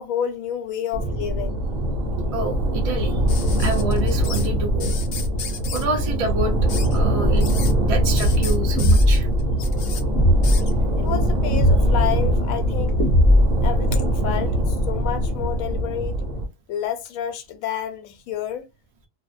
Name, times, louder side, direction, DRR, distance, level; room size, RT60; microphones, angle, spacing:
voice 1, 0.0-1.6 11.0-13.0 13.6-14.6 14.9-16.2 16.7-18.7, left 9 dB, 80° left, 1.0 m, -29 dB
sound 1, 0.9-16.5, equal, 75° right, 1.1 m, -22 dB
voice 2, 2.3-3.2 3.6-4.9 5.7-6.6 6.9-7.5 7.8-9.3, right 3 dB, 40° right, 0.5 m, -28 dB
sound 2, 3.3-4.5 4.8-5.9 6.7-7.0 7.4-7.7 8.2-10.0 10.4-10.7 11.8-12.3 12.7-14.1 15.4-15.5, left 4 dB, 60° left, 0.7 m, -33 dB
sound 3, 8.8-9.3 10.1-10.6 11.5-12.0 13.0-13.7, left 1 dB, 25° left, 0.6 m, -17 dB
2.6 x 2.0 x 2.4 m
omnidirectional pair, 1.4 m